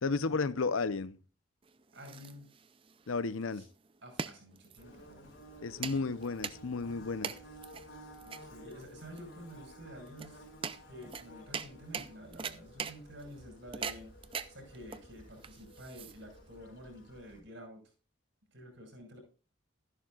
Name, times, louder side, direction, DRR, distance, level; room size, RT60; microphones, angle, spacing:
voice 1, 0.0-1.2 3.1-3.7 5.6-7.3, left 4 dB, 90° left, 0.7 m, -33 dB
sound 1, 1.6-16.5, right 6 dB, 25° right, 0.4 m, -43 dB
voice 2, 1.9-2.5 3.5-3.6 4.0-5.3 7.3-7.4 8.2-10.5 10.9-14.1 14.5-17.8 18.5-19.2, equal, 65° right, 6.4 m, -50 dB
Bird / Buzz, 4.8-17.4, equal, 70° left, 4.3 m, -54 dB
13.0 x 11.5 x 2.4 m
head